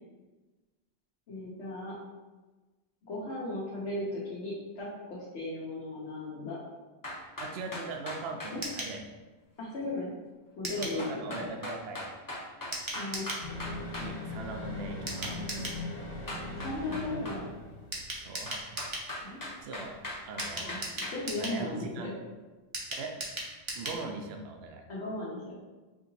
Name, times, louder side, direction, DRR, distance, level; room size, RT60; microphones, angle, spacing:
voice 1, 1.3-2.0 3.0-6.6 8.5-8.6 9.6-10.1 10.6-11.4 12.9-13.2 16.6-17.5 19.2-19.4 20.6-22.1 24.9-25.7, left 2 dB, 85° left, -6 dB, 1.1 m, -36 dB
sound 1, 7.0-8.6 11.0-14.1 16.3-17.4 18.5-21.2, left 1 dB, 25° left, 0.6 m, -39 dB
voice 2, 7.4-9.0 10.8-12.1 14.0-15.8 18.1-18.7 19.0-19.1 19.6-20.0 20.2-20.9 21.3-22.1 23.0-23.2 23.8-24.8, right 3 dB, 70° right, 3 dB, 0.8 m, -40 dB
sound 2, 8.6-8.9 10.6-11.0 12.7-13.4 15.1-15.8 17.9-19.1 20.4-21.6 22.7-24.0 24.3-24.4 24.7-24.8, right 1 dB, 30° right, 0.7 m, -37 dB
sound 3, 13.4-18.4 18.7-18.8, left 2 dB, 70° left, 1.4 m, -40 dB
4.9 x 2.8 x 2.6 m, 1.2 s
omnidirectional pair, 1.1 m